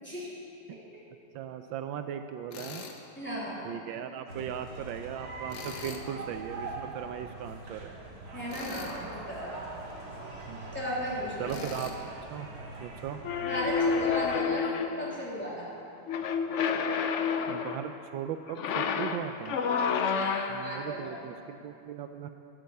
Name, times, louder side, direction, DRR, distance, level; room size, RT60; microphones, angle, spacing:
voice 1, 0.0-0.3 3.1-3.7 8.3-9.6 10.7-11.7 13.4-15.7 20.1-21.1, equal, 5° left, -7 dB, 3.0 m, -35 dB
voice 2, 1.3-2.8 3.6-8.0 10.5-10.7 11.4-12.5 12.8-13.2 17.5-19.6 20.5-22.3, right 9 dB, 80° right, 8 dB, 1.3 m, -38 dB
Tools, 2.5-3.0 5.5-6.1 8.5-9.0 11.5-12.0, left 6 dB, 60° left, 1.5 m, -42 dB
sound 1, 4.3-14.4, right 2 dB, 50° right, 2.3 m, -42 dB
Cadeira arrastando, 13.2-15.1 16.1-17.9 18.5-20.8, left 6 dB, 80° left, 0.6 m, -29 dB
12.0 x 8.7 x 7.9 m, 2.7 s
omnidirectional pair, 2.1 m